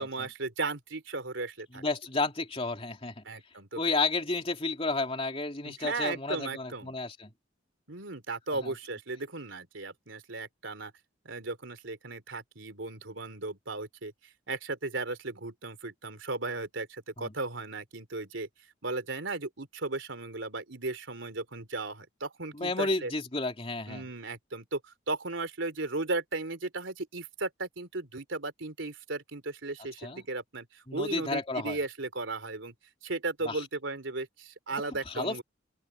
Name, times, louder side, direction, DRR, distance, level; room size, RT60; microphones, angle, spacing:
voice 1, 0.0-1.8 3.2-3.8 5.6-6.9 7.9-10.9 11.3-14.1 14.5-18.5 18.8-23.1 23.9-32.7 33.0-35.4, right 3 dB, 75° right, 3.4 m, -36 dB
voice 2, 1.7-3.2 3.7-7.3 8.6-8.7 17.2-17.3 22.5-24.1 30.0-30.2 30.9-31.8 33.4-33.6 35.1-35.4, left 3 dB, 30° left, 3.0 m, -32 dB
open air
head